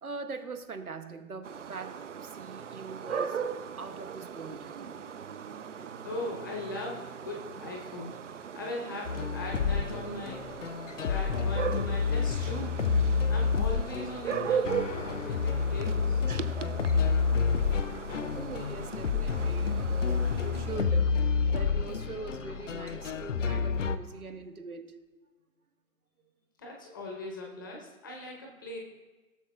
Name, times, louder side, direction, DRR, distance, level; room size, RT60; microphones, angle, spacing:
voice 1, 0.0-3.5 3.8-5.0 5.8-6.0 6.3-6.4 11.7-11.8 16.3-16.6 18.1-21.2 21.5-25.0, right 4 dB, 80° right, 8 dB, 1.3 m, -42 dB
sound 1, 1.4-20.8, right 7 dB, 55° right, 0.6 m, -38 dB
voice 2, 6.0-10.5 11.0-16.2 26.6-28.8, left 1 dB, 15° left, 0 dB, 0.7 m, -40 dB
sound 2, 9.1-24.0, left 5 dB, 60° left, 0.6 m, -29 dB
16.5 x 7.2 x 2.3 m, 1.2 s
figure-of-eight pair, 145°, 44 cm